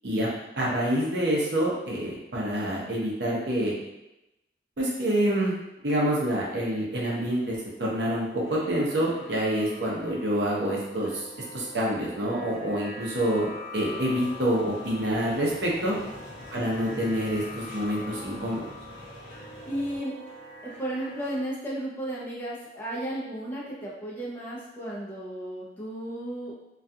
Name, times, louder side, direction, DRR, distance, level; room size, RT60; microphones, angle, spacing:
voice 1, 0.6-3.8 4.8-5.5 5.8-11.3 11.5-15.9 16.5-18.6, right 1 dB, 65° right, -4 dB, 0.6 m, -27 dB
sound 1, 7.0-21.4, left 2 dB, 45° left, 0.8 m, -45 dB
sound 2, 13.8-20.0, equal, 45° right, 1.1 m, -45 dB
voice 2, 15.8-16.1 19.6-20.2 20.6-26.5, right 1 dB, 10° left, -7 dB, 0.4 m, -34 dB
2.3 x 2.2 x 2.6 m, 0.93 s
head